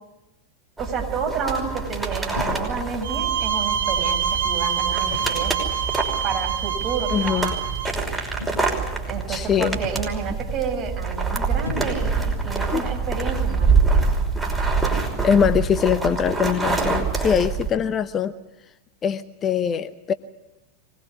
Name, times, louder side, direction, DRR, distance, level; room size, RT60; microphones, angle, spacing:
sound 1, 0.8-17.7, right 4 dB, 10° right, 5.6 m, -25 dB
voice 1, 0.8-5.7 6.2-7.8 9.1-14.0, right 5 dB, 35° right, 2 dB, 6.6 m, -30 dB
sound 2, 2.3-2.8 3.7-4.0 5.1-5.6 6.7-6.9 8.4-8.9 9.7-10.2 11.6-12.3, left 3 dB, 70° left, 2.8 m, -36 dB
sound 3, 3.0-7.9, right 8 dB, 65° right, 3.0 m, -25 dB
voice 2, 7.1-7.6 9.3-9.8 12.7-12.8 15.2-18.3 19.0-20.1, left 7 dB, 25° left, 13 dB, 0.8 m, -22 dB
25.0 x 20.5 x 8.3 m, 0.97 s
figure-of-eight pair, 90°, 0 cm